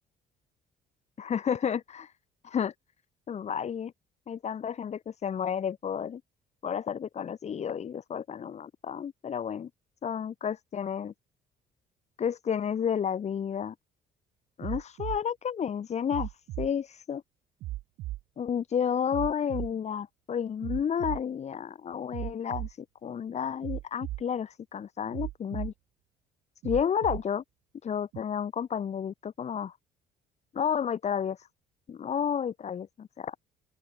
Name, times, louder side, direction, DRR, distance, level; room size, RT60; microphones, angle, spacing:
voice 1, 1.2-2.1 2.4-2.7 3.3-3.9 4.3-6.2 6.6-9.7 10.0-11.1 12.2-13.7 14.6-17.2 18.4-25.7 26.6-27.4 27.8-29.7 30.5-31.5 31.9-33.4, left 8 dB, 40° left, 1.9 m, -31 dB
sound 1, 14.6-15.2 16.1-16.7 17.6-18.2 19.1-19.7 20.6-21.2 22.1-22.7 23.6-24.2 25.1-25.7 26.6-27.2 28.1-28.2, right 16 dB, 80° right, 2.7 m, -36 dB
open air
cardioid pair, 110°, 17 cm